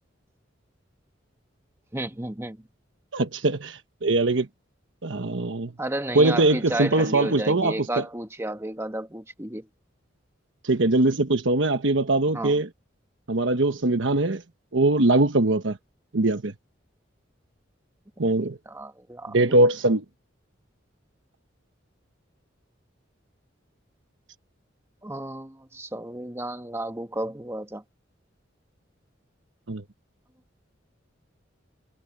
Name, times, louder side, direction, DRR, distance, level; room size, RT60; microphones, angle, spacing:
voice 1, 1.9-2.6 5.8-9.7 12.3-12.6 18.6-19.4 25.0-27.8, right 1 dB, 15° right, 1.4 m, -32 dB
voice 2, 3.1-4.5 5.0-5.7 6.1-8.0 10.6-12.7 13.3-14.4 14.7-15.8 16.1-16.5 18.2-18.6 19.3-20.0 29.7-29.8, right 2 dB, 75° right, 1.1 m, -22 dB
head